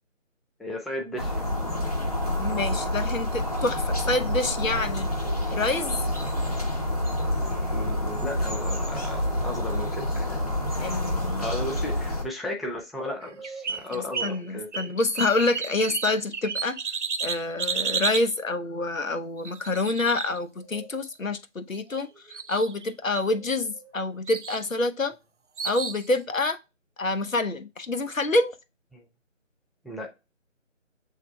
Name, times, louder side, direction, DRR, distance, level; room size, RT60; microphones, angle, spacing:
voice 1, 0.6-1.9 5.1-5.6 7.5-10.6 11.4-14.9 28.9-29.1 29.8-30.1, left 1 dB, ahead, 0.4 m, -35 dB
sound 1, 1.2-12.2, left 1 dB, 30° left, 0.8 m, -28 dB
voice 2, 2.4-5.1 5.5-6.0 10.8-11.5 14.2-16.8 17.2-25.1 25.6-26.6 27.0-28.6, left 2 dB, 90° left, 0.8 m, -27 dB
sound 2, 13.2-14.4 14.7-18.3 19.4-20.9 21.7-22.0 22.3-22.9 23.1-23.9 24.3-24.6 25.6-26.1, right 5 dB, 65° right, 0.5 m, -32 dB
sound 3, 15.0-16.8, right 7 dB, 55° left, 1.0 m, -43 dB
7.2 x 3.3 x 2.2 m
figure-of-eight pair, 160°, 39 cm